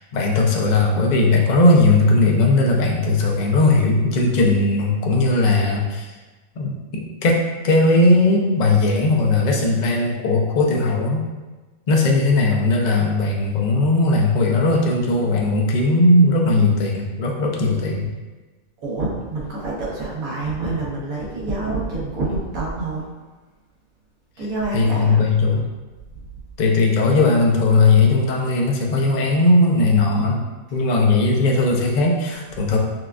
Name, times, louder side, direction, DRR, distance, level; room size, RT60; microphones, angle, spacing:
voice 1, 0.0-6.1 6.6-11.2 11.9-18.1 24.7-25.6 26.6-30.4 30.7-32.8, left 2 dB, 50° left, -1 dB, 0.5 m, -18 dB
voice 2, 18.8-23.1 24.4-25.2 26.1-26.2, right 2 dB, 85° right, -5 dB, 1.4 m, -27 dB
6.2 x 2.3 x 2.5 m, 1.2 s
omnidirectional pair, 1.4 m